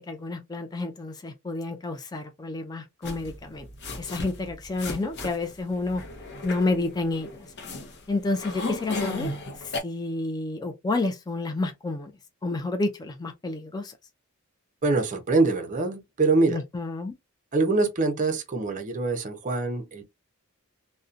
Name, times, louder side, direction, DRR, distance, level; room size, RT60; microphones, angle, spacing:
voice 1, 0.1-3.7 4.0-6.0 6.4-7.5 8.1-9.3 9.6-12.1 12.4-13.9 16.5-17.1, left 2 dB, 20° left, 0.3 m, -30 dB
sound 1, 3.0-9.8, left 2 dB, 50° left, 0.6 m, -35 dB
voice 2, 14.8-16.6 17.5-20.0, right 3 dB, 35° right, 0.5 m, -24 dB
2.6 x 2.1 x 2.4 m
head